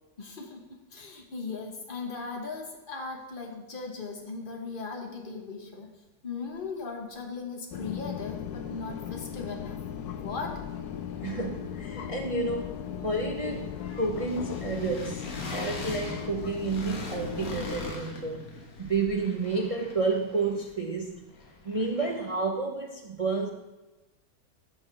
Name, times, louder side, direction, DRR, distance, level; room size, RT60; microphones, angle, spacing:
voice 1, 0.2-5.9 6.2-9.8 10.1-10.6, left 4 dB, 35° left, 1 dB, 1.4 m, -38 dB
sound 1, 7.7-17.9, left 9 dB, 75° left, 1.2 m, -37 dB
sound 2, 9.3-9.9 10.2-22.4, left 2 dB, 60° left, 1.5 m, -44 dB
voice 2, 11.2-18.5 18.8-21.2 21.6-23.5, right 3 dB, 50° right, 1 dB, 0.4 m, -30 dB
13.5 x 5.6 x 3.3 m, 1.1 s
omnidirectional pair, 1.8 m